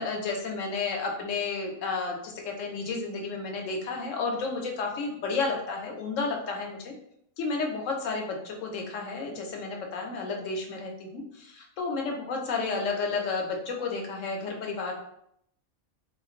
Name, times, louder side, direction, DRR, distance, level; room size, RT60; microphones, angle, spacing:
voice 1, 0.0-6.9 7.4-14.9, left 4 dB, 70° left, 1 dB, 1.0 m, -32 dB
3.6 x 2.9 x 2.4 m, 0.72 s
omnidirectional pair, 1.4 m